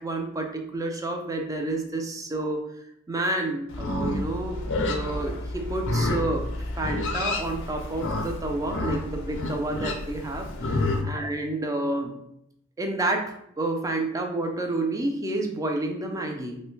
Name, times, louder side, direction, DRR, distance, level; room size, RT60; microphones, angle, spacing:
voice 1, 0.0-2.6 3.1-4.6 4.9-6.5 6.8-12.1 12.8-16.6, right 2 dB, 15° right, 3 dB, 0.4 m, -29 dB
Livestock farm animals working animals, 3.7-11.0, left 2 dB, 60° left, 0.5 m, -29 dB
3.1 x 2.1 x 3.1 m, 0.77 s
head